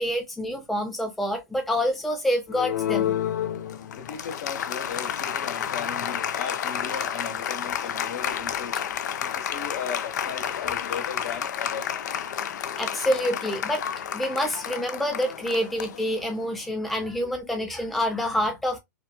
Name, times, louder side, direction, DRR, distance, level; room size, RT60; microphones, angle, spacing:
voice 1, 0.0-3.1 12.6-13.8 14.1-18.8, equal, ahead, 0.4 m, -27 dB
Applause, 2.5-16.6, left 9 dB, 80° left, 0.4 m, -30 dB
voice 2, 3.9-8.8 9.2-11.9, left 6 dB, 60° left, 1.0 m, -36 dB
2.8 x 2.3 x 2.2 m
hypercardioid pair, 140°, 10 cm